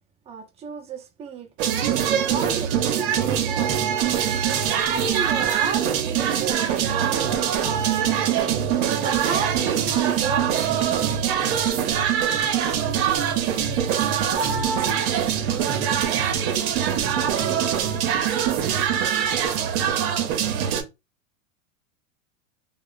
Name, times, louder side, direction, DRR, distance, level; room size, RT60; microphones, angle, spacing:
voice 1, 0.3-1.5 2.0-4.4 4.8-8.4 9.0-11.2 14.5-14.9, right 6 dB, 15° right, 0.6 m, -33 dB
sound 1, 1.6-20.8, right 9 dB, 55° right, 0.8 m, -23 dB
2.8 x 2.2 x 2.5 m
hypercardioid pair, 115°, 40 cm